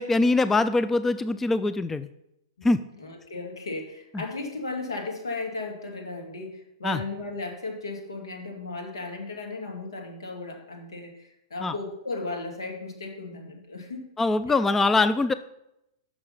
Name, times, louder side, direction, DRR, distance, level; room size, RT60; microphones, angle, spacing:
voice 1, 0.0-2.1 2.6-2.8 4.1-4.2 6.8-7.0 11.6-11.7 14.2-15.3, left 3 dB, 10° left, 13 dB, 0.3 m, -23 dB
voice 2, 3.0-14.1 14.5-14.6, left 3 dB, 90° left, 2 dB, 2.0 m, -35 dB
6.5 x 6.1 x 5.5 m, 0.84 s
hypercardioid pair, 125°, 2 cm